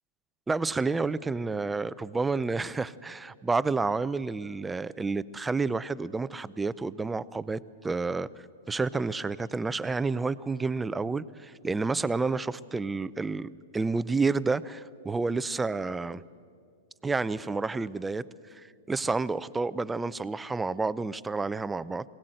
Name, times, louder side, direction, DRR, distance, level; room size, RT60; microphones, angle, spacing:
voice 1, 0.5-8.3 8.7-16.2 17.0-18.2 18.5-18.6 18.9-22.0, right 3 dB, 10° right, 17 dB, 0.5 m, -30 dB
22.0 x 17.5 x 7.8 m, 2.1 s
hypercardioid pair, 125°, 0 cm